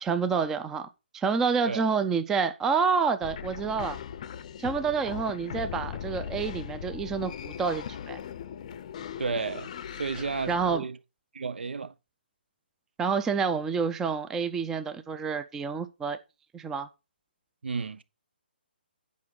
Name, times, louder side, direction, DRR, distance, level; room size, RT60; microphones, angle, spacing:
voice 1, 0.0-0.9 1.1-4.0 4.6-8.2 10.5-10.8 13.0-16.2 16.5-16.9, right 5 dB, 5° right, 0.4 m, -28 dB
sound 1, 3.2-10.8, left 8 dB, 40° left, 0.6 m, -39 dB
voice 2, 9.2-9.7 10.0-11.0 11.3-11.9 17.6-18.0, right 4 dB, 85° right, 0.8 m, -32 dB
8.5 x 5.1 x 4.6 m
hypercardioid pair, 160°, 6 cm